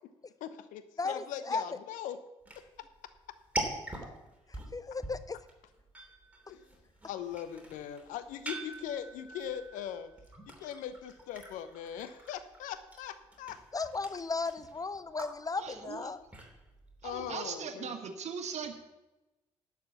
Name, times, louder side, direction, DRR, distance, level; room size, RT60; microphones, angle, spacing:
voice 1, 0.4-2.2 2.6-2.7 6.5-6.7 7.0-10.1 10.5-13.6 17.0-18.0, left 9 dB, 65° left, 12 dB, 0.8 m, -40 dB
voice 2, 1.0-1.6 4.5-5.4 13.7-16.2, left 4 dB, 25° left, 15 dB, 0.5 m, -35 dB
sound 1, 2.4-17.5, right 1 dB, 10° right, 2.9 m, -44 dB
voice 3, 15.6-16.1 17.0-18.7, right 6 dB, 50° right, 6 dB, 1.6 m, -39 dB
11.5 x 6.1 x 7.1 m, 1.0 s
figure-of-eight pair, 45°, 14 cm